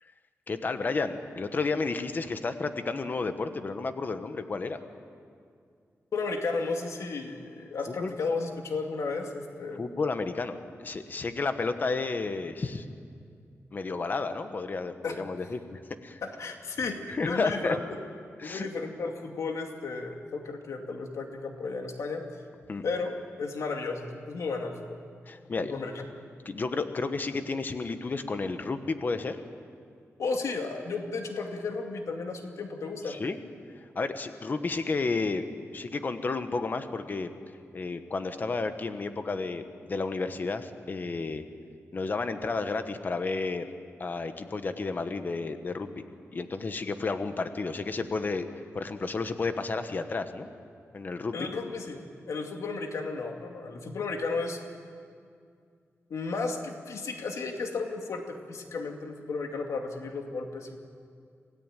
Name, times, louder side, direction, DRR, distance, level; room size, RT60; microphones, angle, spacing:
voice 1, 0.5-4.8 8.0-8.1 9.8-10.6 10.8-12.8 13.7-16.2 17.1-17.8 18.4-18.7 22.7-22.8 25.3-25.7 26.4-29.4 33.1-33.4 33.9-35.5 35.7-37.3 37.7-41.4 41.9-43.7 44.0-46.0 46.3-48.5 48.7-50.5 50.9-51.5, left 3 dB, 40° left, 9 dB, 1.2 m, -31 dB
voice 2, 6.1-9.9 15.0-15.2 16.2-18.0 18.4-22.2 22.8-25.0 25.6-26.0 30.2-33.2 51.3-52.0 52.3-54.6 56.1-60.8, left 4 dB, 85° left, 3 dB, 2.4 m, -34 dB
27.0 x 17.5 x 9.0 m, 2.2 s
wide cardioid pair, 160°, 5 cm